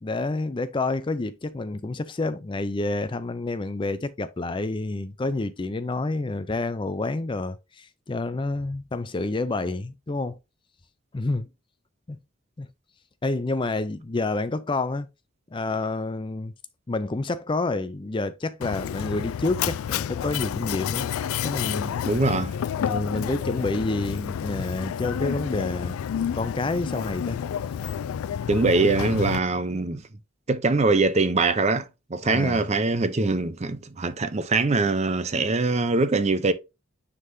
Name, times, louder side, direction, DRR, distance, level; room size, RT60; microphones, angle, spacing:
voice 1, 0.0-10.4 11.1-11.5 12.1-12.2 12.6-12.7 13.2-15.1 15.5-16.5 16.9-21.1 21.4-22.0 22.8-26.0 26.3-27.4 32.2-32.7, left 2 dB, 25° left, 0.4 m, -28 dB
Mechanisms, 18.6-29.4, left 8 dB, 90° left, 0.3 m, -30 dB
voice 2, 22.0-22.5 28.5-30.0 30.5-36.5, right 3 dB, 30° right, 0.6 m, -23 dB
9.5 x 3.7 x 2.6 m
head